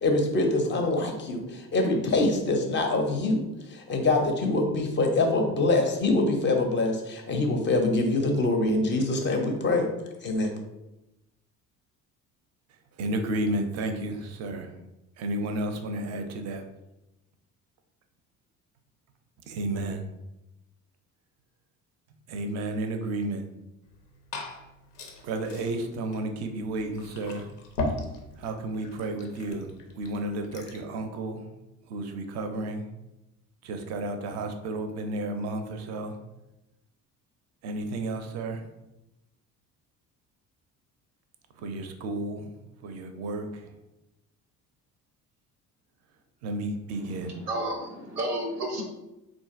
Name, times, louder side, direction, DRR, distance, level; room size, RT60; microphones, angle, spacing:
voice 1, 0.0-3.4 3.7-9.9 10.2-10.5, left 2 dB, 25° left, 3 dB, 0.5 m, -24 dB
voice 2, 13.0-14.7 15.2-16.6 19.5-20.0 22.3-23.4 25.2-27.5 28.4-31.5 31.9-32.8 33.6-36.2 37.6-38.7 41.6-42.5 42.8-43.7 46.4-47.4, right 2 dB, 35° right, 6 dB, 0.4 m, -32 dB
Glass / Fill (with liquid), 23.8-30.9, left 2 dB, 85° left, 0.5 m, -39 dB
voice 3, 47.1-48.8, right 1 dB, 90° right, 1 dB, 0.6 m, -32 dB
3.7 x 2.4 x 2.4 m, 0.94 s
figure-of-eight pair, 55°, 46 cm